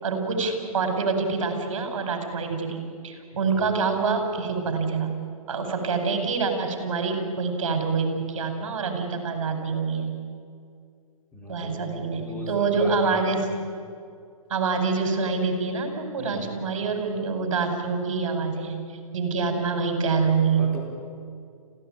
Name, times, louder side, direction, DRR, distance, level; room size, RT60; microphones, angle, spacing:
voice 1, 0.0-5.1 5.5-10.1 11.5-13.5 14.5-20.7, right 4 dB, 60° right, 5 dB, 5.2 m, -26 dB
voice 2, 11.3-13.2 16.2-16.4 20.6-20.8, left 1 dB, 5° left, -3 dB, 4.8 m, -38 dB
26.5 x 16.0 x 9.1 m, 2.3 s
hypercardioid pair, 150°, 19 cm